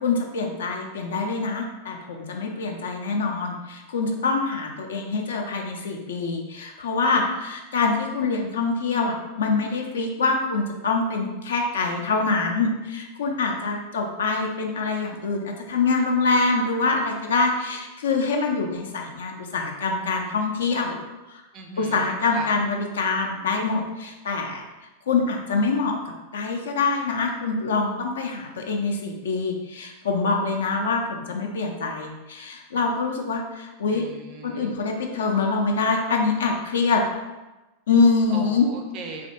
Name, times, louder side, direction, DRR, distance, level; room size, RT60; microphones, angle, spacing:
voice 1, 0.0-21.0 21.3-21.4 21.8-24.6 25.1-25.9 26.3-34.0 34.4-37.0 37.9-38.7, left 4 dB, 65° left, 2 dB, 0.4 m, -25 dB
voice 2, 21.5-22.5 33.9-34.8 38.3-39.3, right 4 dB, 35° right, 3 dB, 0.4 m, -39 dB
3.2 x 2.5 x 2.8 m, 1.1 s
figure-of-eight pair, 90°, 0 cm